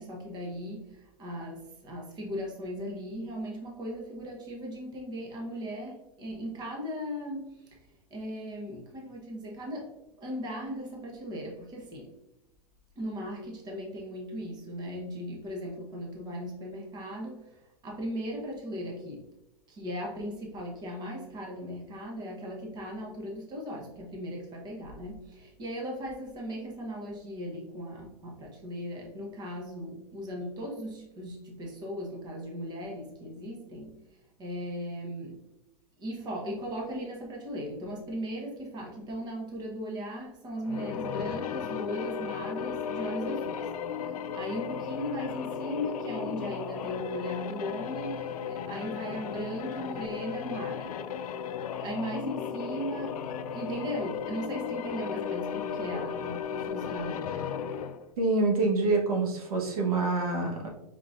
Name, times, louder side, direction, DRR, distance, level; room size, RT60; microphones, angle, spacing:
voice 1, 0.0-7.8 8.1-12.1 13.0-19.3 19.7-35.4 36.0-43.7 44.0-51.0 51.8-57.5, equal, 20° right, -1 dB, 1.0 m, -38 dB
sound 1, 40.6-58.1, left 7 dB, 80° left, 0.4 m, -35 dB
voice 2, 58.2-60.7, right 3 dB, 80° right, 0 dB, 1.2 m, -26 dB
4.9 x 3.7 x 2.5 m, 0.95 s
hypercardioid pair, 130°, 19 cm